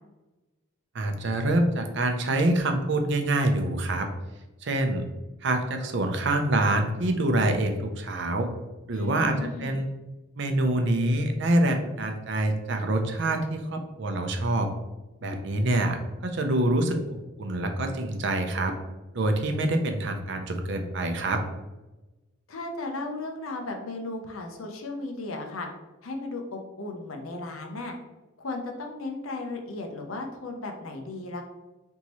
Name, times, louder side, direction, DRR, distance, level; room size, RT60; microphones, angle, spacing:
voice 1, 0.9-4.1 4.6-5.0 5.4-8.5 8.9-9.9 10.4-14.7 15.2-16.0 16.2-17.0 17.4-18.7 19.1-21.4, right 1 dB, 55° right, 5 dB, 0.6 m, -26 dB
voice 2, 8.9-9.8 22.5-25.7 26.0-28.0 28.4-31.4, left 2 dB, 80° left, 3 dB, 0.7 m, -35 dB
4.1 x 3.6 x 3.0 m, 1.1 s
head